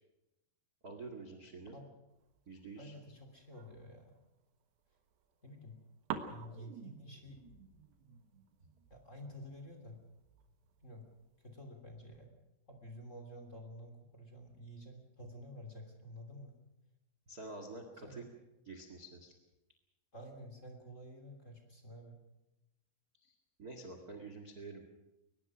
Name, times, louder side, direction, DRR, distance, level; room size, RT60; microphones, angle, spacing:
voice 1, 0.8-1.8 2.5-2.9 17.3-18.3 18.6-19.3 23.2-24.8, right 3 dB, 35° right, 5 dB, 1.4 m, -48 dB
sound 1, 2.1-4.3 4.8-5.7 6.1-11.6, right 8 dB, 80° right, 3.5 m, -49 dB
voice 2, 2.8-4.2 5.4-5.8 6.3-7.4 8.9-10.0 10.8-11.1 11.4-12.3 12.7-16.5 18.0-18.3 20.1-22.2, equal, 20° left, 4 dB, 2.8 m, -50 dB
23.0 x 20.5 x 6.2 m, 0.95 s
omnidirectional pair, 4.7 m